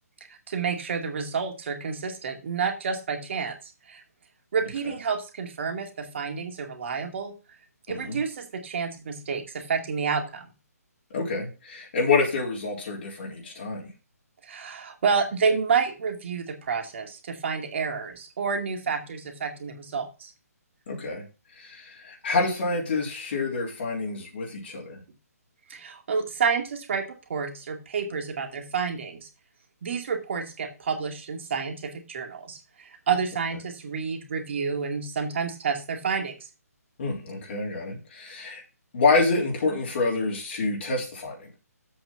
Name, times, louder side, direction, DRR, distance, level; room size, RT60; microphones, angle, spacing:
voice 1, 0.5-3.6 3.9-4.0 4.5-7.3 7.9-10.5 14.4-20.3 25.7-29.3 29.8-36.4, right 5 dB, 45° right, 5 dB, 2.3 m, -29 dB
voice 2, 7.9-8.2 11.1-13.9 20.9-21.2 21.6-25.0 37.0-38.6 38.9-41.5, left 3 dB, 45° left, -3 dB, 3.5 m, -27 dB
7.9 x 6.1 x 5.7 m, 0.30 s
figure-of-eight pair, 140°, 9 cm